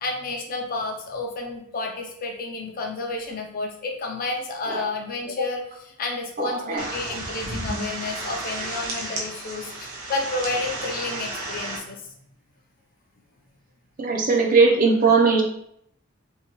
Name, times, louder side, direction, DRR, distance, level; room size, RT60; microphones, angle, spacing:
voice 1, 0.0-12.1, left 3 dB, 40° left, 1 dB, 0.4 m, -31 dB
sound 1, 6.8-11.8, right 2 dB, 75° right, 0.7 m, -32 dB
voice 2, 14.0-15.4, right 4 dB, 40° right, 0 dB, 0.4 m, -18 dB
2.7 x 2.2 x 2.9 m, 0.71 s
head